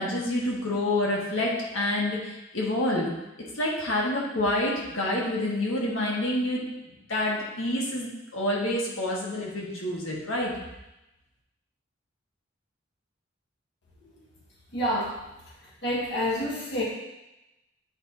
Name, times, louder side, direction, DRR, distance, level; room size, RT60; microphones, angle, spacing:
voice 1, 0.0-3.1 3.5-6.6 7.1-10.5, left 1 dB, 90° left, -4 dB, 1.5 m, -28 dB
voice 2, 14.7-15.1 15.8-16.8, equal, 60° left, -5 dB, 1.6 m, -28 dB
8.9 x 4.5 x 2.8 m, 0.95 s
head